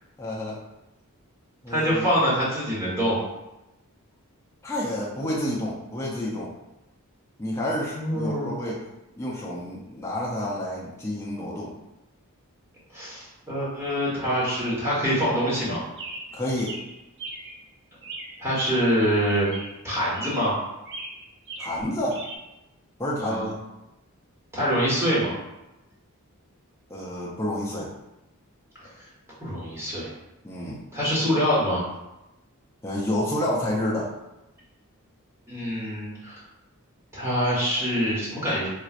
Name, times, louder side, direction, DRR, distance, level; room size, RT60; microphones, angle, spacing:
voice 1, 0.2-0.6 1.6-2.0 4.6-6.5 7.4-8.8 9.2-11.7 16.3-16.8 21.6-22.2 23.0-23.5 26.9-27.9 30.4-30.8 32.8-34.1, left 1 dB, 10° left, -5 dB, 0.5 m, -29 dB
voice 2, 1.7-3.2 7.9-8.5 12.9-15.8 18.4-19.5 19.8-20.5 23.2-23.5 24.5-25.3 29.4-30.1 30.9-31.8 35.5-36.4 37.1-38.7, equal, 10° right, -8 dB, 1.3 m, -25 dB
Chirp tweet, 16.0-17.6 18.0-19.0 19.3-19.8 20.1-20.6 20.9-22.4, right 2 dB, 55° right, 0.6 m, -38 dB
4.4 x 2.5 x 2.5 m, 0.95 s
head